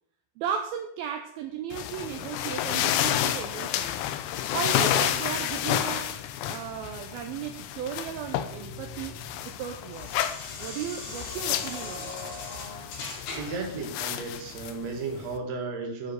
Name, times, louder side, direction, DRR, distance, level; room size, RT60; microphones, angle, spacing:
voice 1, 0.4-3.9 4.5-6.1 6.4-9.1 9.5-12.1, right 8 dB, 80° right, 5 dB, 2.2 m, -35 dB
sound 1, 1.7-15.4, left 11 dB, 90° left, 2.8 m, -31 dB
sound 2, 7.9-13.7, left 3 dB, 65° left, 4.6 m, -41 dB
voice 2, 13.4-16.1, right 4 dB, 55° right, 2 dB, 2.1 m, -34 dB
9.4 x 4.8 x 6.4 m, 0.68 s
omnidirectional pair, 4.9 m